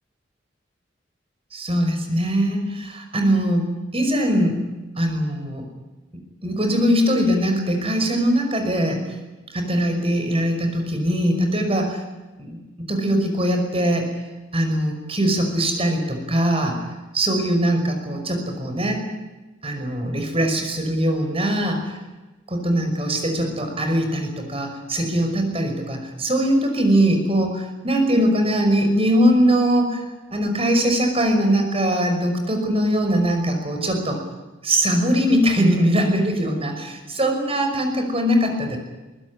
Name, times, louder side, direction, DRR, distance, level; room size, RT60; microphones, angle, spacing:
voice 1, 1.5-4.6 5.0-5.7 6.4-8.9 9.5-12.0 12.4-12.6 12.9-14.1 14.5-16.8 17.1-19.0 19.6-22.0 22.5-34.2 34.6-38.8, equal, 30° right, 4 dB, 5.7 m, -21 dB
23.0 x 19.5 x 9.8 m, 1.1 s
head